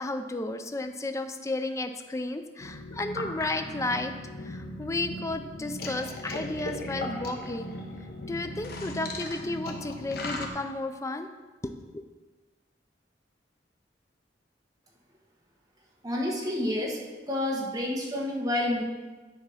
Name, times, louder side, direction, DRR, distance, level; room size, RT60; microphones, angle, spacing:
voice 1, 0.0-4.1 4.4-7.8 8.3-11.3 11.6-12.0, left 2 dB, 15° left, 7 dB, 0.4 m, -33 dB
sound 1, 2.6-10.5, left 1 dB, 55° left, 0.9 m, -37 dB
voice 2, 16.0-17.0 17.3-18.8, left 1 dB, 20° right, -2 dB, 1.3 m, -29 dB
9.6 x 3.6 x 5.6 m, 1.3 s
head